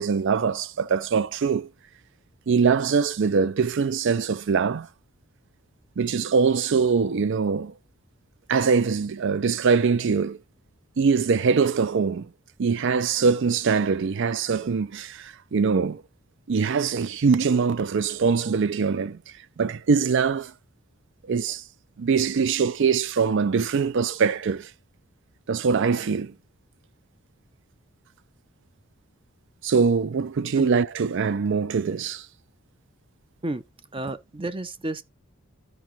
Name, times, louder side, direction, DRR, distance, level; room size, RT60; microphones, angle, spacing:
voice 1, 0.0-1.7 2.5-4.9 6.0-7.7 8.5-10.4 11.0-12.3 12.6-16.0 16.5-19.2 19.6-20.5 21.3-21.6 22.0-24.7 25.5-26.3 29.6-32.3, right 5 dB, 65° right, 0.4 m, -23 dB
voice 2, 33.9-35.0, right 2 dB, 25° right, 0.7 m, -31 dB
13.5 x 4.8 x 2.9 m
head